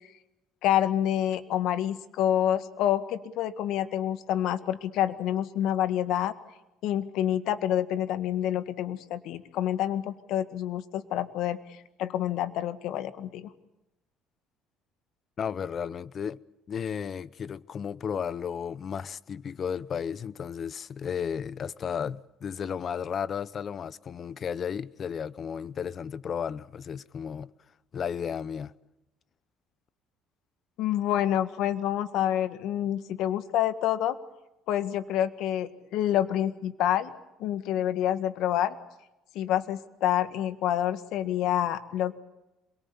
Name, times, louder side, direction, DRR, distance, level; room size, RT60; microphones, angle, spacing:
voice 1, 0.6-6.3 6.8-13.5 30.8-34.2 34.7-37.1 37.4-38.8 39.4-42.1, left 11 dB, 75° left, 1.8 m, -28 dB
voice 2, 15.4-16.4 16.7-27.5 27.9-28.7, left 7 dB, 45° left, 0.9 m, -34 dB
27.5 x 23.0 x 7.1 m
cardioid pair, 100°, 0 cm